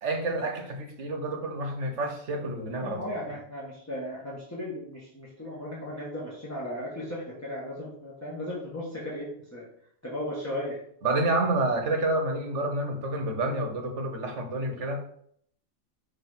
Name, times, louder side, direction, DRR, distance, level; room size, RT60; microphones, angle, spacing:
voice 1, 0.0-3.0 11.0-15.2, right 2 dB, 60° right, 5 dB, 1.3 m, -29 dB
voice 2, 2.7-9.6 10.0-10.8, left 1 dB, 10° left, -6 dB, 1.5 m, -36 dB
5.9 x 3.2 x 5.7 m, 0.66 s
omnidirectional pair, 1.4 m